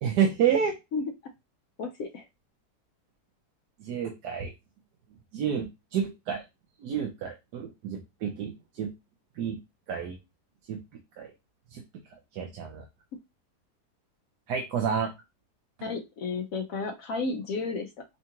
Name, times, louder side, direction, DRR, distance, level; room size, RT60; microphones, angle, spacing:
voice 1, 0.0-0.8 3.8-4.5 5.3-6.4 6.8-8.9 9.4-9.6 9.9-10.2 10.7-10.8 11.2-11.3 11.7-11.8 12.3-12.8 14.5-15.1, right 7 dB, 90° right, 2 dB, 1.3 m, -29 dB
voice 2, 1.8-2.3 15.8-18.0, left 4 dB, 65° left, 3 dB, 1.0 m, -32 dB
5.5 x 2.3 x 2.9 m, 0.22 s
omnidirectional pair, 1.7 m